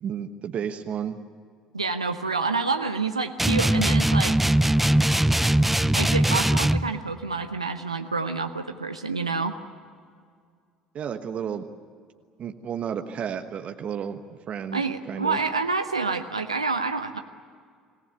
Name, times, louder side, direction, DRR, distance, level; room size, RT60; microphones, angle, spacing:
voice 1, 0.0-1.2 10.9-11.6 12.4-14.2 14.5-15.4, right 8 dB, 45° right, 6 dB, 1.3 m, -32 dB
voice 2, 1.7-4.4 5.9-9.6 14.7-17.2, right 4 dB, 90° right, 7 dB, 0.8 m, -28 dB
sound 1, 3.4-6.9, right 1 dB, 5° right, 0.7 m, -21 dB
26.0 x 18.5 x 9.9 m, 2.1 s
figure-of-eight pair, 60°, 3 cm